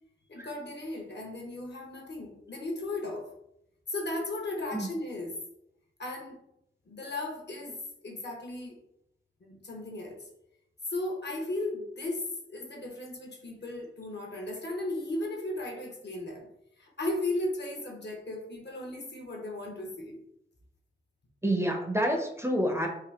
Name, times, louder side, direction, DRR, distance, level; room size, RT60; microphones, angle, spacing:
voice 1, 0.3-3.3 3.9-5.4 6.0-6.4 6.8-8.8 9.4-10.2 10.9-16.5 16.8-20.2, left 2 dB, 55° left, 1 dB, 0.9 m, -36 dB
voice 2, 21.4-22.9, equal, 15° right, 1 dB, 0.6 m, -28 dB
3.7 x 2.4 x 3.4 m, 0.78 s
wide cardioid pair, 75°, 21 cm